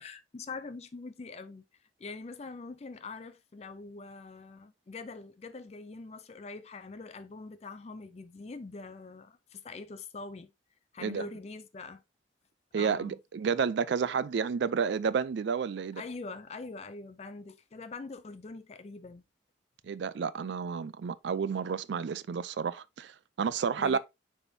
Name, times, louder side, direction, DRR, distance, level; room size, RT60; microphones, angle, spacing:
voice 1, 0.0-1.6 2.0-10.5 10.9-12.0 12.8-13.1 16.0-19.2 23.8-24.0, left 3 dB, 35° left, 0.4 m, -43 dB
voice 2, 12.7-16.0 19.8-24.0, right 6 dB, 70° right, 0.4 m, -31 dB
9.8 x 3.5 x 2.7 m
head